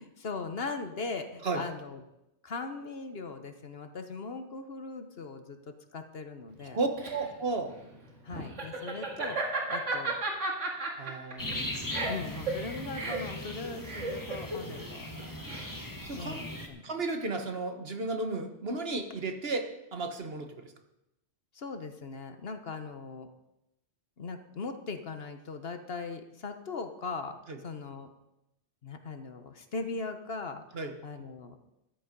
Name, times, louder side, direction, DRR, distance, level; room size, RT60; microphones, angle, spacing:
voice 1, 0.0-2.0 2.4-6.8 8.2-9.4 9.7-10.2 11.5-15.1 16.1-16.8 21.5-23.3 24.2-27.4 27.6-28.1 28.8-30.6 31.0-31.6, left 4 dB, 55° left, 8 dB, 1.2 m, -39 dB
voice 2, 6.6-7.7 11.0-11.7 16.0-16.5 16.8-20.7 27.5-27.6 30.7-30.9, right 3 dB, 55° right, 6 dB, 1.5 m, -34 dB
Laughter, 6.6-16.0, right 3 dB, 85° right, 2.3 m, -34 dB
sound 1, 11.4-16.7, left 1 dB, 15° left, 1.5 m, -39 dB
13.0 x 11.0 x 5.3 m, 0.89 s
omnidirectional pair, 1.2 m